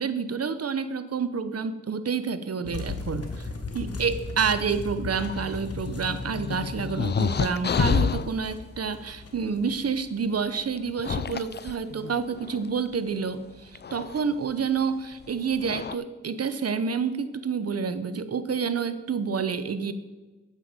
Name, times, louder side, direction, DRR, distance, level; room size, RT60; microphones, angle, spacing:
voice 1, 0.0-3.5 3.7-19.9, right 5 dB, 50° right, 12 dB, 0.9 m, -29 dB
sound 1, 2.6-10.3, left 3 dB, 50° left, 1.6 m, -37 dB
sound 2, 5.2-8.3 9.7-9.8 10.8-12.6 13.7-14.2 15.2-15.3 15.6-16.0, left 6 dB, 35° left, 0.5 m, -29 dB
9.5 x 7.8 x 5.1 m, 1.2 s
cardioid pair, 50°, 30 cm